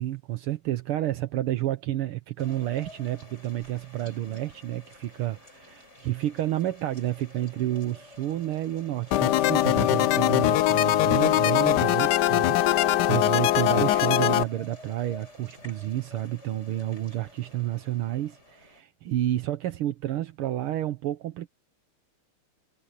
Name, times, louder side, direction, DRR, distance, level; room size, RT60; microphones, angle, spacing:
voice 1, 0.0-21.5, right 14 dB, 75° right, 1.8 m, -30 dB
sound 1, 2.4-18.8, left 1 dB, 30° left, 6.8 m, -46 dB
sound 2, 9.1-14.4, left 14 dB, 75° left, 0.9 m, -22 dB
omnidirectional pair, 2.4 m